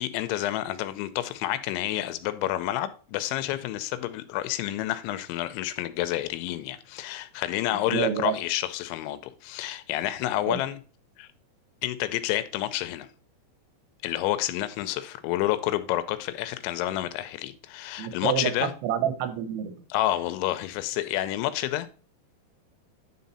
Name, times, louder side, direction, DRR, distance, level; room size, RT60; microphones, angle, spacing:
voice 1, 0.0-10.8 11.2-11.3 11.8-13.1 14.0-18.7 19.9-21.9, left 14 dB, 85° left, 3.0 m, -29 dB
voice 2, 7.9-8.3 10.5-10.6 18.0-19.8, right 10 dB, 85° right, 3.3 m, -28 dB
10.5 x 3.9 x 4.1 m
omnidirectional pair, 5.2 m